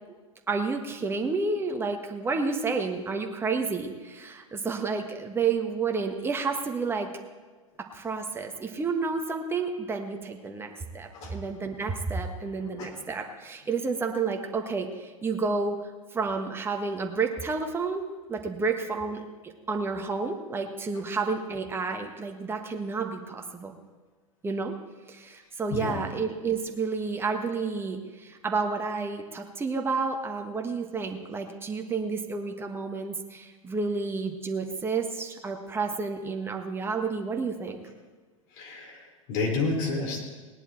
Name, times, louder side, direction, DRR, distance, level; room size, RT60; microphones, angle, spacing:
voice 1, 0.5-7.1 7.8-15.8 16.1-18.0 18.3-23.8 24.4-24.7 25.1-37.8, right 4 dB, 15° right, 3 dB, 1.4 m, -30 dB
voice 2, 12.6-12.9 25.7-26.0 38.6-40.2, left 3 dB, 50° left, -1 dB, 4.3 m, -30 dB
18.5 x 11.0 x 4.4 m, 1.4 s
figure-of-eight pair, 90°, 17 cm